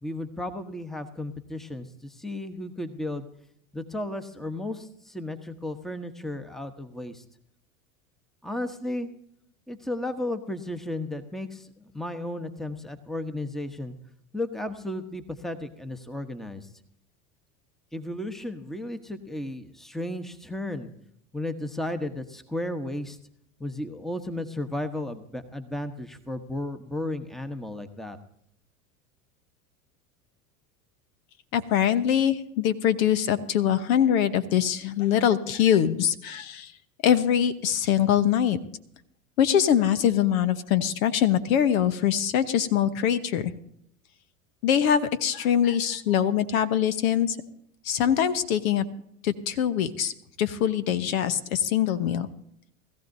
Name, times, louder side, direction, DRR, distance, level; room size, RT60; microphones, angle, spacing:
voice 1, 0.0-3.3 3.7-7.2 8.4-9.1 9.7-13.9 14.3-16.7 17.9-20.9 21.3-23.2 23.6-28.2, left 1 dB, ahead, 9 dB, 1.0 m, -34 dB
voice 2, 31.5-36.7 37.0-38.6 39.4-43.5 44.6-47.4 47.8-48.9 49.2-52.3, left 9 dB, 70° left, 11 dB, 1.1 m, -23 dB
20.5 x 14.5 x 2.7 m, 0.72 s
hypercardioid pair, 85°, 43 cm